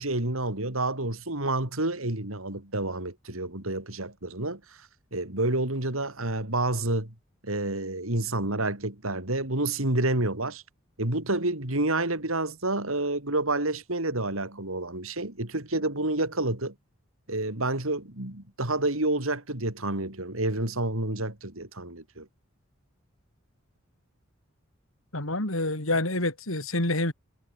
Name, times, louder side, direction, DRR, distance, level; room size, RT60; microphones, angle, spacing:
voice 1, 0.0-4.8 5.1-7.1 7.4-10.6 11.0-16.7 17.3-22.3, right 2 dB, 80° right, 4.3 m, -29 dB
voice 2, 25.1-27.1, left 2 dB, 80° left, 5.7 m, -27 dB
head